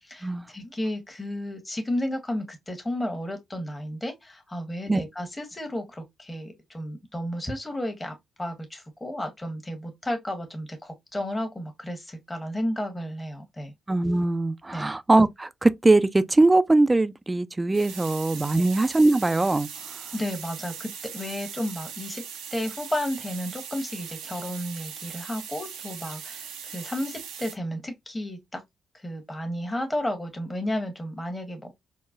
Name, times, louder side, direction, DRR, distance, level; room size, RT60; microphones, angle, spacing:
voice 1, 0.0-13.7 14.7-14.9 18.5-18.7 20.1-22.2 22.5-28.6 28.9-31.7, left 1 dB, 20° left, 1.0 m, -32 dB
voice 2, 13.9-19.7, right 2 dB, 25° right, 0.3 m, -21 dB
sound 1, 17.7-27.5, right 7 dB, 90° right, 0.6 m, -40 dB
3.8 x 2.1 x 2.4 m
supercardioid pair, 50°, 0 cm